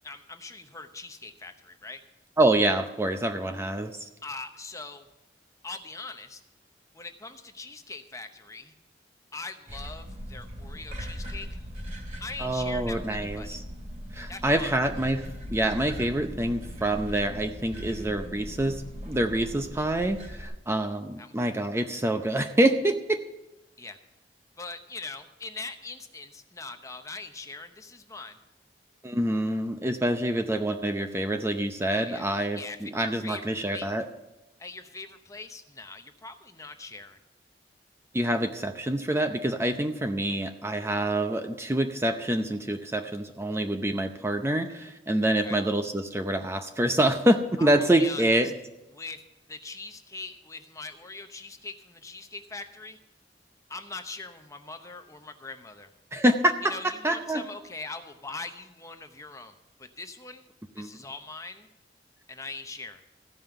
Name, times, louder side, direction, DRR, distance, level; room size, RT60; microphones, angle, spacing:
voice 1, 0.0-2.0 4.2-5.1 5.6-6.4 6.9-8.7 9.3-11.5 12.2-13.6 14.3-14.7 21.2-21.3 21.7-21.8 23.8-24.0 24.6-28.4 31.9-32.3 32.6-33.4 33.7-34.0 34.6-37.2 45.4-45.6 47.6-48.2 48.9-49.2 49.5-53.0 53.7-55.9 56.6-60.5 60.8-61.7 62.3-63.0, left 3 dB, 20° left, 7 dB, 0.8 m, -41 dB
voice 2, 2.4-4.1 12.4-13.6 14.1-23.2 29.0-34.1 38.1-48.5 56.1-56.5 57.0-57.4 60.8-60.9, right 1 dB, 15° right, 6 dB, 0.6 m, -26 dB
sound 1, 9.7-20.4, equal, 40° right, 2.9 m, -39 dB
15.0 x 5.5 x 7.8 m, 0.96 s
head